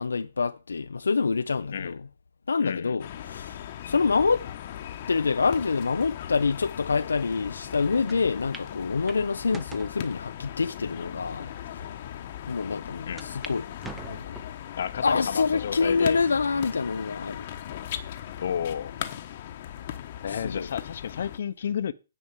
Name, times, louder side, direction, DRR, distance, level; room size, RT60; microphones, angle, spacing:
voice 1, 0.0-2.0 2.5-4.5 5.1-11.5 12.5-13.7 14.0-14.4 15.0-17.5 20.3-20.7, left 4 dB, 85° left, 0.5 m, -26 dB
voice 2, 2.6-3.0 13.1-13.3 14.8-16.2 18.4-19.0 20.2-21.9, left 8 dB, 60° left, 0.8 m, -31 dB
sound 1, 3.0-21.4, left 11 dB, 45° left, 1.0 m, -38 dB
sound 2, 8.1-8.2 8.5-8.7 9.1-9.9 10.6-10.7 11.4-11.5 11.8-11.9 13.2-13.6 13.8-14.6 15.1-15.6 16.1-16.2 17.4-17.8, right 3 dB, 10° right, 0.7 m, -43 dB
9.8 x 4.6 x 7.4 m
hypercardioid pair, 145°, 0 cm